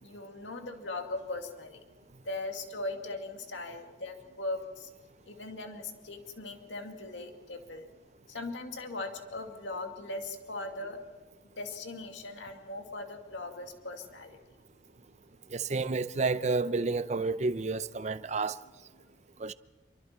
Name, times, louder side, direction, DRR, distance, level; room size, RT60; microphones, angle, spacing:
voice 1, 0.0-1.8 2.3-4.9 5.3-7.9 8.3-11.0 11.6-14.4, left 2 dB, 90° left, 2.2 m, -39 dB
voice 2, 15.5-18.6 19.4-19.5, right 3 dB, 40° right, 0.6 m, -30 dB
27.0 x 23.5 x 4.4 m
head